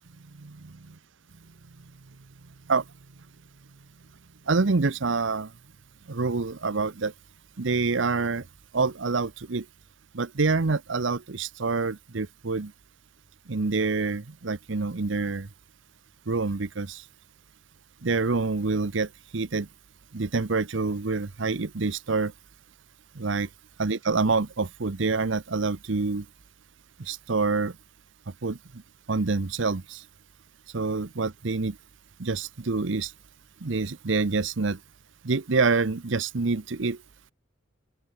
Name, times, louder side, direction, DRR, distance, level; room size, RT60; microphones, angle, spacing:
voice 1, 0.4-0.7 2.7-2.8 4.5-5.5 6.1-7.1 7.6-8.4 8.7-9.6 10.1-12.7 13.5-15.5 16.3-17.0 18.0-19.7 20.1-22.3 23.2-23.5 23.8-26.2 27.0-27.7 28.4-28.6 29.1-30.0 30.7-31.8 32.2-33.1 33.6-34.8 35.2-37.0, right 3 dB, 65° right, 0.8 m, -26 dB
open air
head